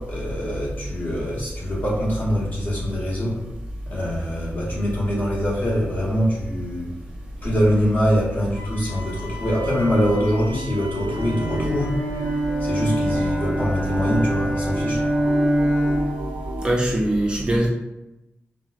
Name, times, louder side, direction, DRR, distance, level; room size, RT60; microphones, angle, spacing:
voice 1, 0.0-3.4 3.8-7.0 7.4-12.0 12.6-15.0, equal, 45° left, -5 dB, 1.0 m, -24 dB
Wind instrument woodwind instrument, 8.5-13.3, left 3 dB, 70° left, 1.0 m, -40 dB
sound 1, 10.8-16.7, right 1 dB, 80° right, 0.4 m, -34 dB
Bowed string instrument, 11.0-16.3, right 1 dB, 10° left, 0.7 m, -24 dB
voice 2, 16.6-17.7, right 1 dB, 20° right, -3 dB, 0.4 m, -21 dB
3.9 x 2.0 x 2.4 m, 0.95 s
wide cardioid pair, 175°, 4 cm